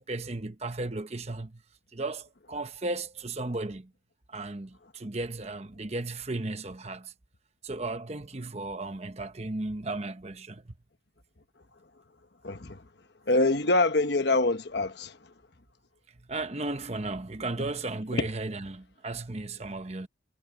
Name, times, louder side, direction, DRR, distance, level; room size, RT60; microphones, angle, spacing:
voice 1, 0.0-1.6 1.9-3.9 4.3-7.1 7.6-10.7 16.2-20.1, right 2 dB, 35° right, 1.0 m, -35 dB
voice 2, 12.4-12.8 13.3-15.2 18.2-18.3, left 2 dB, 55° left, 1.2 m, -25 dB
head